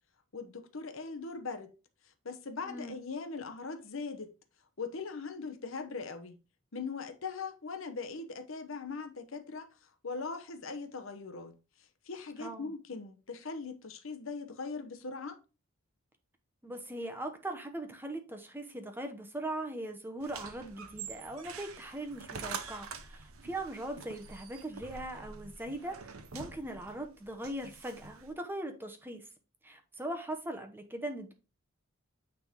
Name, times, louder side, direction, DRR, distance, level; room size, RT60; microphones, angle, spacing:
voice 1, 0.3-1.7 2.2-4.3 4.8-6.3 6.7-9.7 10.0-11.5 12.1-15.4, left 4 dB, 65° left, 0.9 m, -40 dB
voice 2, 2.6-3.0 12.4-12.7 16.6-29.3 29.6-31.3, right 1 dB, 10° right, 1.0 m, -40 dB
sound 1, 20.2-28.3, right 5 dB, 75° right, 0.9 m, -46 dB
9.0 x 3.6 x 3.6 m
head